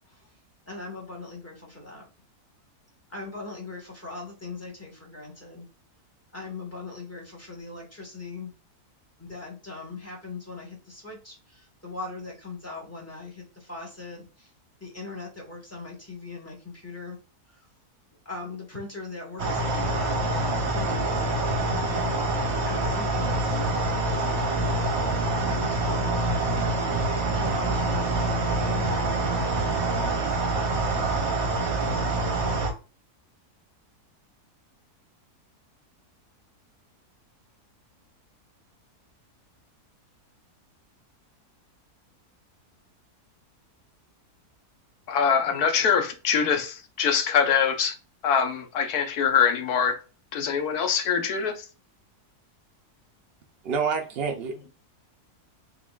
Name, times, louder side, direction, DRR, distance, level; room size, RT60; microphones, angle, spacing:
voice 1, 0.7-2.1 3.1-5.7 6.3-8.5 9.2-14.5 14.8-17.2 17.5-17.6 18.2-22.1 22.6-24.7 25.4-26.2 27.3-29.7, left 3 dB, 10° left, 1.1 m, -40 dB
sound 1, 19.4-32.7, right 2 dB, 50° right, 0.9 m, -26 dB
voice 2, 45.1-48.0 48.2-50.0 50.3-51.6, left 7 dB, 75° left, 1.2 m, -23 dB
voice 3, 53.6-54.7, right 5 dB, 75° right, 0.5 m, -28 dB
3.7 x 3.7 x 2.3 m
omnidirectional pair, 1.7 m